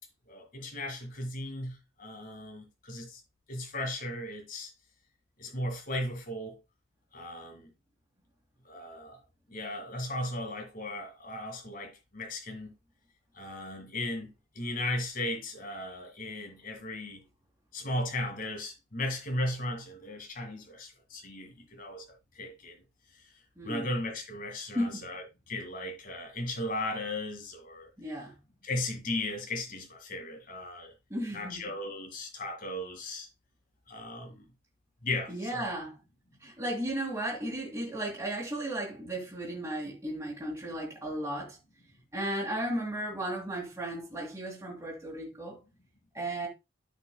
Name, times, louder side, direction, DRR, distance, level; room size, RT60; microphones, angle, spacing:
voice 1, 0.3-3.2 3.5-4.7 5.4-6.6 7.1-7.7 8.6-9.2 9.5-12.7 13.3-14.3 14.6-17.2 17.7-22.0 22.4-22.8 23.6-27.9 28.6-30.9 31.3-33.3 33.9-34.4 35.0-35.7, left 1 dB, 45° left, 2.0 m, -36 dB
voice 2, 23.6-23.9 24.7-25.0 28.0-28.3 31.1-31.6 34.3-34.4 35.3-36.0 36.4-41.6 42.1-45.6 46.1-46.5, right 1 dB, 15° right, 2.1 m, -35 dB
13.0 x 5.1 x 2.2 m
head